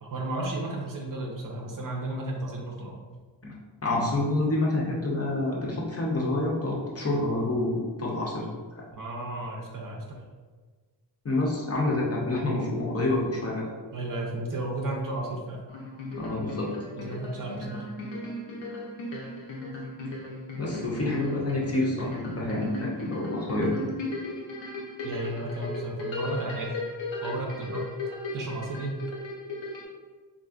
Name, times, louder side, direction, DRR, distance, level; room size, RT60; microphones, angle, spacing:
voice 1, 0.0-3.0 8.9-10.2 13.9-15.6 16.9-17.9 25.0-26.7 27.2-27.9 28.3-29.0, right 2 dB, 50° right, -1 dB, 0.5 m, -33 dB
voice 2, 3.8-8.5 8.8-8.9 11.2-13.6 16.2-16.7 20.0-20.1 20.5-23.8, left 2 dB, 35° left, -3 dB, 0.5 m, -28 dB
sound 1, 15.7-29.8, left 2 dB, 85° left, 0.7 m, -37 dB
3.5 x 2.5 x 2.4 m, 1.4 s
wide cardioid pair, 150°, 44 cm